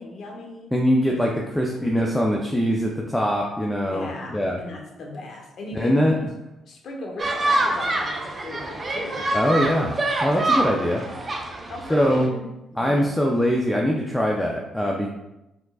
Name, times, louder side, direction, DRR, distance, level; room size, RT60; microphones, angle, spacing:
voice 1, 0.0-0.7 1.8-2.2 3.8-6.2 6.7-9.7 10.8-13.0, left 2 dB, 60° left, 1 dB, 1.0 m, -38 dB
voice 2, 0.7-4.6 5.7-6.1 9.3-11.0 11.9-12.3 12.8-15.1, equal, 5° left, -1 dB, 0.5 m, -22 dB
sound 1, 7.2-12.3, right 2 dB, 30° right, 0.7 m, -26 dB
4.5 x 3.6 x 2.4 m, 0.93 s
cardioid pair, 90°, 0 cm